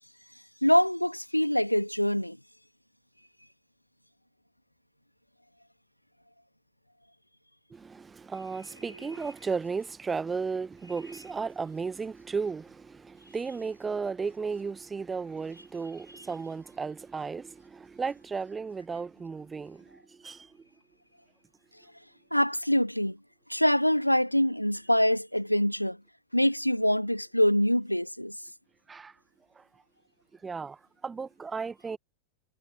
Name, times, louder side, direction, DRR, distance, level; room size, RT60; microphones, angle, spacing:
voice 1, 0.6-2.4 9.0-9.2 16.1-16.2 22.3-23.2 23.5-26.0 26.3-28.4, equal, 90° left, 2.1 m, -25 dB
voice 2, 7.7-20.5 28.9-29.1 29.6-29.7 30.4-30.8 31.0-32.0, right 5 dB, 15° right, 1.5 m, -34 dB
figure-of-eight pair, 90°, 0 cm